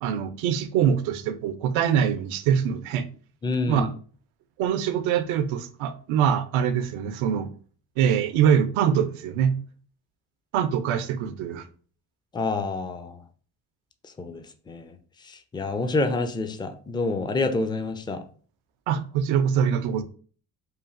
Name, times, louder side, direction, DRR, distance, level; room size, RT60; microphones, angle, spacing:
voice 1, 0.0-3.0 3.7-3.9 4.6-7.5 8.0-9.6 10.5-11.7 18.9-20.0, right 8 dB, 80° right, 0.6 m, -24 dB
voice 2, 3.4-3.9 12.3-13.2 14.0-15.0 15.2-18.2, left 3 dB, 10° left, 0.3 m, -28 dB
3.1 x 2.4 x 2.4 m
supercardioid pair, 55°, 47 cm